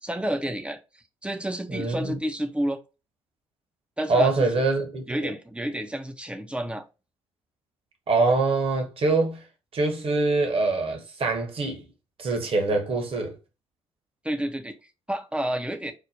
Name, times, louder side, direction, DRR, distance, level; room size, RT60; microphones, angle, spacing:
voice 1, 0.0-2.8 4.0-4.5 5.1-6.9 14.2-15.9, right 1 dB, 5° right, 0.5 m, -30 dB
voice 2, 1.7-2.2 4.1-5.3 8.1-9.4 9.7-11.8 12.2-13.3, right 3 dB, 35° right, 0.9 m, -24 dB
4.8 x 2.1 x 2.6 m
figure-of-eight pair, 40°, 16 cm